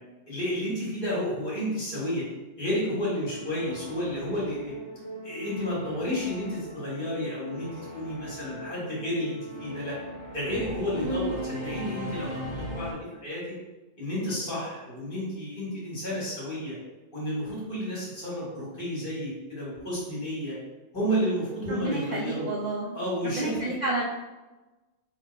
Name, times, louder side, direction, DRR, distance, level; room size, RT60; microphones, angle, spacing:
voice 1, 0.3-2.2 2.6-4.7 5.2-7.7 7.9-10.0 10.3-12.3 12.7-13.4 14.0-16.7 17.1-20.6 20.9-22.5 22.9-23.7, equal, 40° left, -6 dB, 1.8 m, -31 dB
Singing / Musical instrument, 3.0-12.9, equal, 25° right, 0.7 m, -39 dB
voice 2, 11.0-11.3 21.7-23.0 23.2-24.0, right 2 dB, 85° right, -2 dB, 0.4 m, -30 dB
3.6 x 2.7 x 4.3 m, 1.1 s
omnidirectional pair, 1.4 m